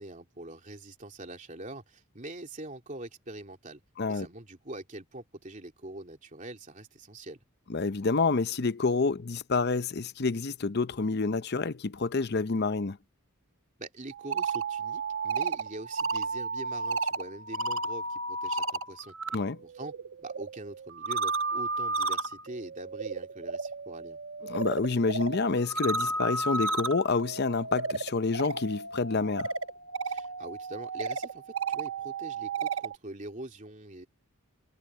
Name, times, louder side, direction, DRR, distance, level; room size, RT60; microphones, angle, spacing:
voice 1, 0.0-3.8 4.1-7.4 13.8-19.1 19.6-19.9 20.2-24.2 30.0-34.1, right 1 dB, 35° right, 3.0 m, -43 dB
voice 2, 7.7-13.0 19.3-19.6 24.5-29.5, left 4 dB, 50° left, 0.7 m, -28 dB
sound 1, 14.1-19.4 19.7-33.0, right 3 dB, 60° right, 1.1 m, -33 dB
head